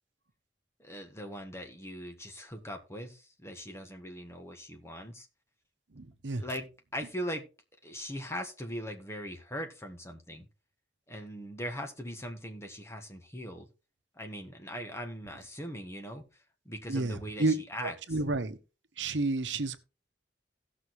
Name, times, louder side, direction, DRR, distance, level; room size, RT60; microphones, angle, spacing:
voice 1, 0.8-5.3 6.4-7.5 7.8-10.5 11.1-13.7 14.1-18.2, equal, 15° left, 1.5 m, -40 dB
voice 2, 5.9-6.4 16.9-17.5 17.8-18.6 19.0-19.8, right 2 dB, 90° right, 1.0 m, -30 dB
17.0 x 6.2 x 3.1 m
head